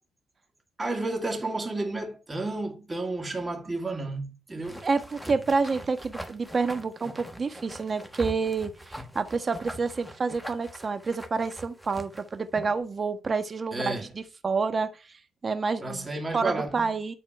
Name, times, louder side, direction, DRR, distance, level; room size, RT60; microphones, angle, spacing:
voice 1, 0.8-4.8 13.7-14.1 15.8-16.9, right 2 dB, 20° right, 2.7 m, -31 dB
sound 1, 4.6-12.8, right 1 dB, ahead, 1.5 m, -42 dB
voice 2, 4.8-14.1 14.4-14.9 15.4-16.1 16.3-17.1, right 4 dB, 35° right, 1.4 m, -28 dB
10.5 x 4.3 x 4.5 m
cardioid pair, 90°, 0 cm